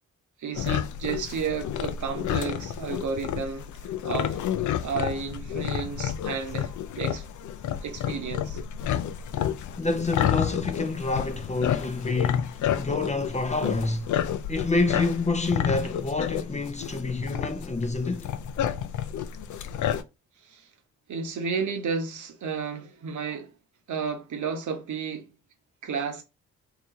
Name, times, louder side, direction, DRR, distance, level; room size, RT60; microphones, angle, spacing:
voice 1, 0.4-3.7 4.0-4.4 4.8-6.7 7.0-7.2 7.8-8.6 20.4-20.6 21.1-23.5 23.9-25.3 25.8-26.2, right 5 dB, 60° right, 1.1 m, -32 dB
sound 1, 0.5-20.0, left 9 dB, 60° left, 0.5 m, -30 dB
voice 2, 9.8-14.1 14.5-18.3, left 3 dB, 20° left, 0.7 m, -28 dB
2.9 x 2.9 x 3.6 m
supercardioid pair, 55°, 34 cm